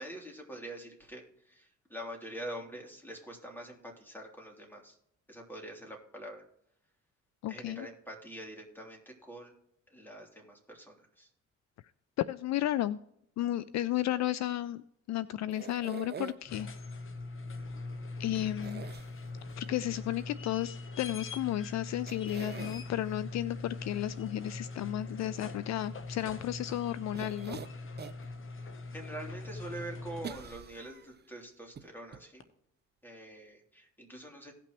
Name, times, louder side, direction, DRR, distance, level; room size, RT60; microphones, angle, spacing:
voice 1, 0.0-5.0 5.3-6.4 7.5-9.5 9.9-11.3 28.9-32.4 33.0-34.5, right 1 dB, 5° left, 0 dB, 3.2 m, -45 dB
voice 2, 7.4-7.9 12.2-13.0 13.4-16.7 18.2-18.8 19.6-27.6, left 13 dB, 65° left, 17 dB, 0.4 m, -33 dB
sound 1, 15.5-16.6 18.6-19.5 21.5-21.6 22.1-22.8 27.1-28.3 28.7-28.8 30.2-31.2 31.8-31.9 32.1-32.2, right 7 dB, 35° right, 0.7 m, -44 dB
sound 2, 16.3-30.7 32.4-32.5, left 3 dB, 45° left, 1.1 m, -42 dB
18.0 x 6.0 x 3.1 m, 0.74 s
cardioid pair, 90°, 30 cm